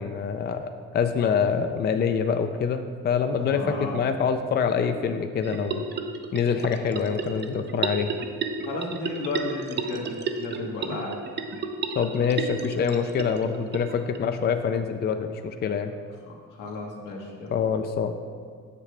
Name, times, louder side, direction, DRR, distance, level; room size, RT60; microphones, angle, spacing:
voice 1, 0.0-3.6 3.9-5.9 6.3-8.2 12.0-15.9 17.5-18.2, left 6 dB, 35° left, 7 dB, 0.4 m, -25 dB
voice 2, 3.4-4.0 8.6-11.2 16.3-17.5, left 2 dB, 85° left, -1 dB, 1.4 m, -34 dB
sound 1, 5.4-14.2, right 4 dB, 35° right, 0.5 m, -33 dB
7.4 x 6.5 x 3.3 m, 2.1 s
cardioid pair, 90°, 30 cm